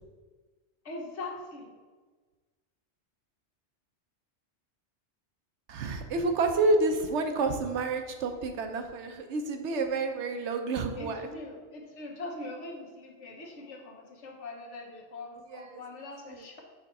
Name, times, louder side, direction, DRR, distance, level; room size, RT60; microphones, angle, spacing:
voice 1, 0.8-1.7 10.9-16.6, left 2 dB, 85° left, 0 dB, 1.4 m, -42 dB
voice 2, 5.7-11.3 15.5-15.8 16.3-16.4, right 3 dB, 80° right, 5 dB, 1.0 m, -29 dB
5.5 x 4.4 x 5.3 m, 1.4 s
omnidirectional pair, 1.2 m